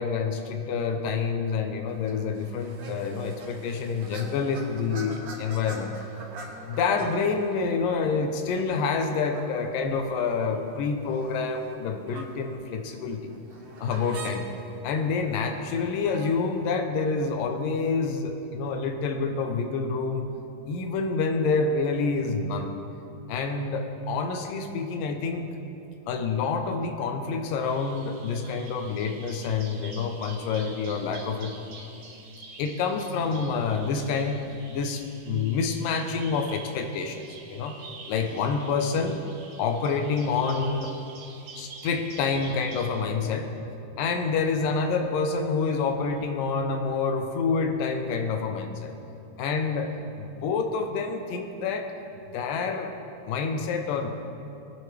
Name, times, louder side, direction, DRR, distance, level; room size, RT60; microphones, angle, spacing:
voice 1, 0.0-5.9 6.7-13.3 13.8-14.5 14.8-20.3 20.7-22.7 23.3-25.5 26.1-31.5 32.6-37.8 38.1-39.2 39.6-40.9 41.6-43.5 44.0-48.9 49.4-51.9 52.3-52.9 53.3-54.1, left 4 dB, 85° left, 5 dB, 2.6 m, -27 dB
sound 1, 1.9-16.6, right 3 dB, 55° right, 2.0 m, -46 dB
Bird vocalization bird call bird song, 27.6-43.0, right 4 dB, 80° right, 3.1 m, -47 dB
20.5 x 9.4 x 3.4 m, 2.7 s
omnidirectional pair, 3.8 m